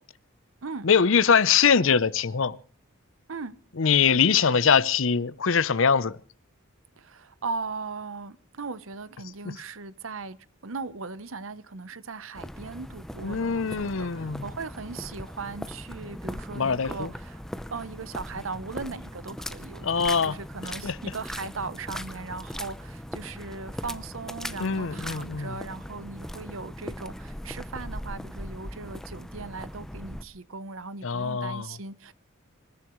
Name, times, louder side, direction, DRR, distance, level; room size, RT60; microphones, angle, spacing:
voice 1, 0.8-2.6 3.8-6.2 9.4-9.6 13.2-14.5 16.5-17.1 19.8-20.4 20.8-21.0 24.6-25.6 31.0-31.7, left 6 dB, 65° left, 0.7 m, -23 dB
voice 2, 7.0-10.4 10.6-17.4 17.7-32.1, right 4 dB, 65° right, 0.8 m, -38 dB
sound 1, 12.3-30.2, equal, ahead, 0.7 m, -39 dB
27.0 x 14.5 x 3.1 m
head